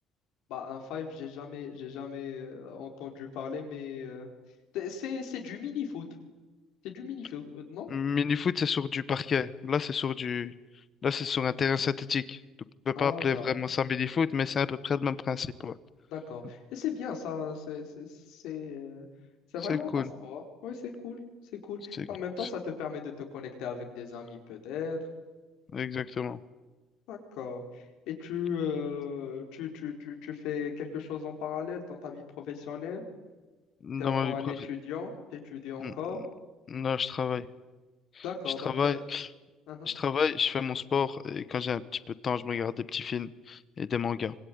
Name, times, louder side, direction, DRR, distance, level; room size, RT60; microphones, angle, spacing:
voice 1, 0.5-4.3 4.7-6.1 6.8-7.9 12.9-13.5 16.1-19.1 19.5-21.2 21.5-25.0 27.1-33.1 34.0-36.2 38.2-39.0 39.7-39.9, left 7 dB, 70° left, 3 dB, 4.4 m, -37 dB
voice 2, 7.9-10.5 11.0-12.4 12.8-15.7 19.7-20.1 21.9-22.1 22.4-22.5 25.7-26.4 33.8-34.7 35.8-35.9 36.7-37.5 38.1-39.3 39.9-44.3, left 6 dB, 30° left, 16 dB, 0.9 m, -30 dB
25.5 x 23.5 x 9.5 m, 1.2 s
cardioid pair, 180°, 0 cm